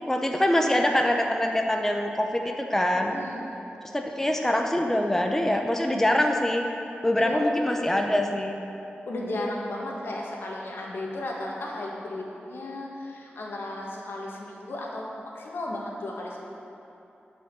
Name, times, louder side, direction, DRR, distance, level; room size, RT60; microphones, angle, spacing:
voice 1, 0.1-3.2 3.9-6.6 7.0-8.6, left 1 dB, 10° left, 3 dB, 0.7 m, -24 dB
voice 2, 3.1-3.7 7.2-7.4 9.0-15.1 15.3-16.4, left 1 dB, 80° left, -2 dB, 1.8 m, -34 dB
12.5 x 5.4 x 6.9 m, 2.9 s
wide cardioid pair, 100°, 4 cm